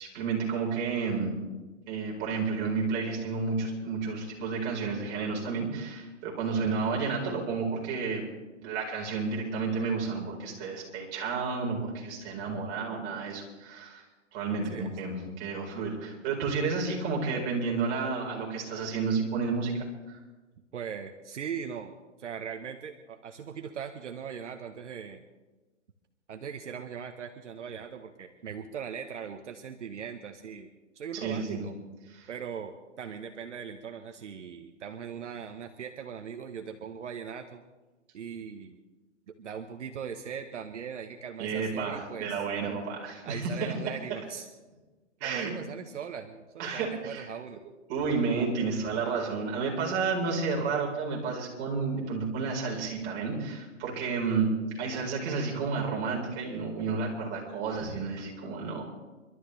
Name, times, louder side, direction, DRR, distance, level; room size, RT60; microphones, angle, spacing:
voice 1, 0.0-1.3 1.9-8.2 8.6-14.0 14.3-19.7 20.1-20.2 31.1-31.6 32.1-32.3 41.4-43.7 45.2-45.5 46.6-47.3 47.9-54.5 54.8-58.8, right 4 dB, 30° right, -2 dB, 4.6 m, -31 dB
voice 2, 20.7-25.2 26.3-30.7 30.9-31.7 32.3-32.7 33.0-37.6 38.1-38.8 39.3-42.4 43.2-44.5 45.2-47.6, right 7 dB, 70° right, 5 dB, 1.3 m, -40 dB
30.0 x 12.5 x 3.4 m, 1.2 s
hypercardioid pair, 135°, 37 cm